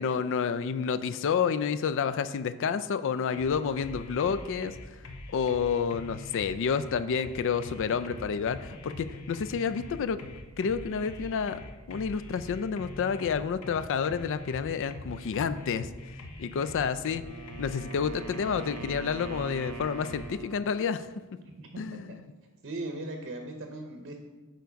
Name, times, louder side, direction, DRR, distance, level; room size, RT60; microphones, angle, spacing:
voice 1, 0.0-4.8 5.3-10.2 10.6-11.6 11.9-15.9 16.4-17.2 17.6-21.1 21.8-22.1, left 6 dB, 60° left, 14 dB, 0.3 m, -29 dB
sound 1, 3.3-20.3, left 2 dB, 85° left, 0.9 m, -44 dB
Wind instrument woodwind instrument, 16.9-20.8, right 5 dB, 85° right, 0.5 m, -43 dB
voice 2, 21.4-22.2 22.6-24.2, right 2 dB, 50° right, 4 dB, 0.7 m, -39 dB
7.0 x 4.6 x 5.1 m, 1.2 s
head